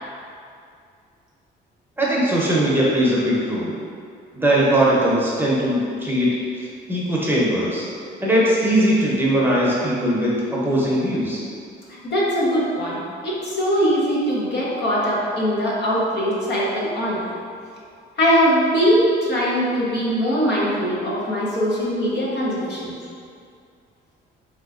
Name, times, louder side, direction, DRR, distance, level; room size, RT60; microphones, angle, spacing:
voice 1, 2.0-3.8 4.3-7.9 8.2-11.4, right 1 dB, 10° right, -6 dB, 0.8 m, -20 dB
voice 2, 12.0-17.3 18.2-22.9, equal, 60° left, -6 dB, 0.9 m, -21 dB
3.2 x 2.9 x 2.4 m, 2.3 s
cardioid pair, 90°, 20 cm